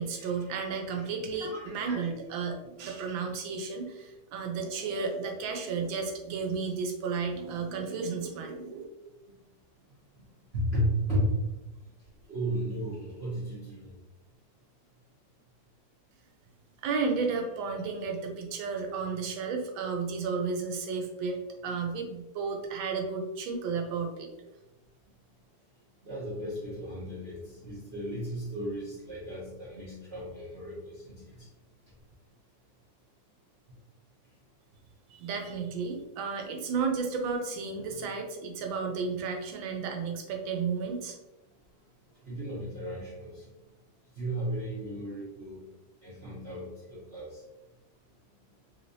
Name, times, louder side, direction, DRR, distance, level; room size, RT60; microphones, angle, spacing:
voice 1, 0.0-8.8 16.8-24.3 35.1-41.2, right 5 dB, 80° right, 3 dB, 1.4 m, -33 dB
voice 2, 1.4-2.0 10.5-11.3 12.3-13.9 26.0-31.5 42.3-43.4 44.2-45.6 46.0-47.3, equal, 55° right, -7 dB, 0.7 m, -34 dB
3.4 x 3.2 x 2.6 m, 1.0 s
omnidirectional pair, 2.1 m